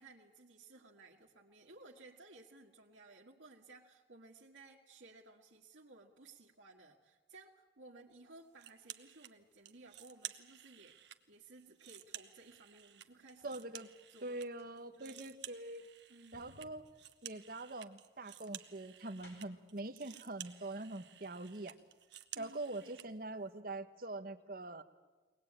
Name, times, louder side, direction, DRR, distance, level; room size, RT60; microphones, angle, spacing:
voice 1, 0.0-13.6 14.1-14.5 14.9-15.2 16.1-16.5 22.3-23.1, right 2 dB, 90° right, -3 dB, 1.9 m, -58 dB
sound 1, 8.6-9.3 9.6-11.2 11.6-14.5 14.8-23.1, right 12 dB, 70° right, 1.1 m, -52 dB
sound 2, 12.7-13.6 14.3-19.7 20.7-20.8 21.2-22.0 22.3-22.4, left 1 dB, 65° left, 5.8 m, -66 dB
voice 2, 13.4-13.9 14.2-15.8 16.3-16.8 17.2-21.8 22.4-24.8, right 2 dB, 50° right, 9 dB, 1.1 m, -44 dB
23.0 x 19.0 x 8.9 m, 1.3 s
head